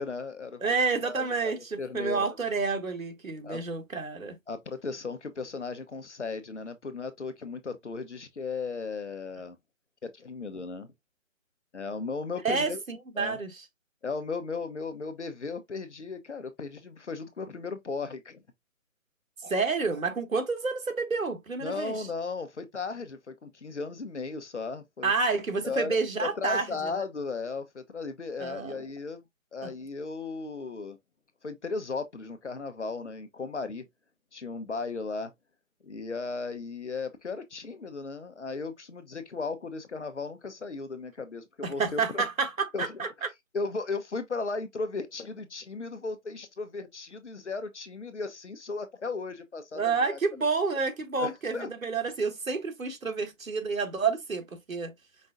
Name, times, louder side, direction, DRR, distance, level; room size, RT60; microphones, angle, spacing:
voice 1, 0.0-0.8 1.0-2.4 3.4-3.7 4.5-9.6 10.0-10.9 11.7-12.8 13.2-13.4 14.0-18.4 21.6-25.1 25.6-29.2 29.5-31.0 31.4-33.8 34.3-35.3 35.8-42.2 42.7-43.1 43.5-50.2 51.2-51.7, left 4 dB, 60° left, 1.1 m, -36 dB
voice 2, 0.6-4.4 12.4-13.6 19.4-22.0 25.0-26.9 28.4-28.8 29.6-29.7 41.6-43.3 49.7-54.9, right 4 dB, 90° right, 1.6 m, -29 dB
5.3 x 3.8 x 2.3 m
figure-of-eight pair, 175°, 39 cm